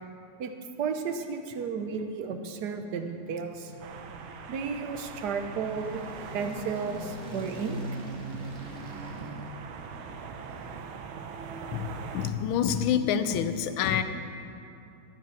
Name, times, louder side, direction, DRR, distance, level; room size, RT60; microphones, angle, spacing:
voice 1, 0.8-3.7 4.5-6.0 6.3-7.8, right 5 dB, 60° right, 6 dB, 1.2 m, -33 dB
sound 1, 3.0-11.4, right 1 dB, 45° right, 2.1 m, -43 dB
sound 2, 3.8-12.3, right 6 dB, 80° right, 1.6 m, -43 dB
voice 2, 12.1-14.0, left 8 dB, 80° left, 10 dB, 1.5 m, -27 dB
13.0 x 9.2 x 6.2 m, 2.7 s
omnidirectional pair, 2.3 m